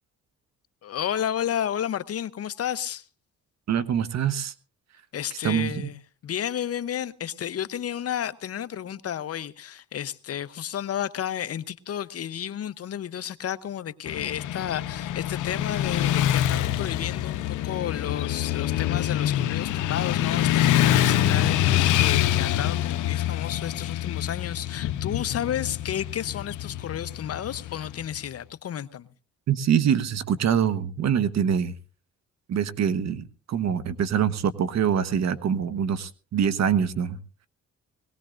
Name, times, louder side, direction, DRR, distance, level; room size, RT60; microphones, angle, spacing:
voice 1, 0.8-3.1 5.1-29.1, left 10 dB, 55° left, 0.8 m, -32 dB
voice 2, 3.7-4.5 5.4-5.9 29.5-31.7 32.5-37.2, right 8 dB, 60° right, 1.2 m, -24 dB
Motorcycle / Traffic noise roadway noise, 14.1-28.2, left 12 dB, 85° left, 0.8 m, -25 dB
21.5 x 18.5 x 2.5 m
cardioid pair, 90°, 30 cm